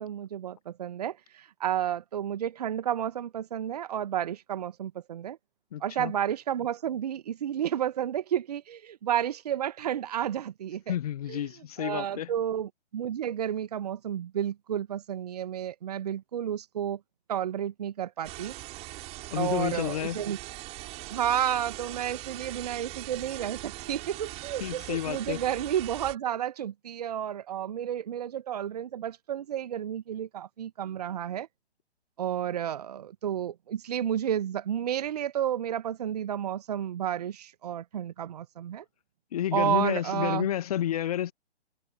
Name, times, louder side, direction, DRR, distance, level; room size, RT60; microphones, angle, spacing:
voice 1, 0.0-5.4 5.8-10.9 11.3-11.5 11.8-17.0 17.3-18.5 19.3-20.4 21.1-31.5 32.2-38.8 39.5-40.5, right 10 dB, 40° right, 1.2 m, -31 dB
voice 2, 5.7-6.1 10.9-12.3 19.3-20.2 24.6-25.4 39.3-41.3, left 11 dB, 35° left, 1.5 m, -30 dB
sound 1, 18.2-26.2, right 20 dB, 20° right, 5.8 m, -41 dB
figure-of-eight pair, 130°, 32 cm